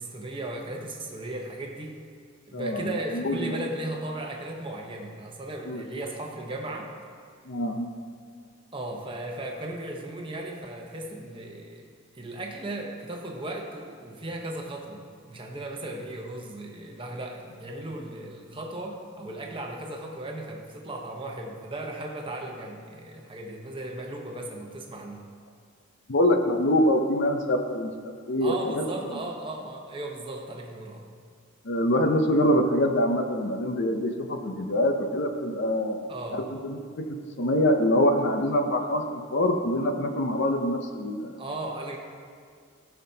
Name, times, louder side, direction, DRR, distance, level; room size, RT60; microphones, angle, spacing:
voice 1, 0.0-2.0 2.5-6.9 8.7-11.8 12.1-25.2 28.4-31.0 36.1-36.5 41.3-42.0, right 1 dB, 25° right, 1 dB, 0.9 m, -36 dB
voice 2, 2.5-3.6 5.7-5.8 7.5-7.9 26.1-27.9 28.3-29.1 31.6-41.3, left 1 dB, 55° left, 5 dB, 0.7 m, -25 dB
17.0 x 5.8 x 2.8 m, 2.1 s
head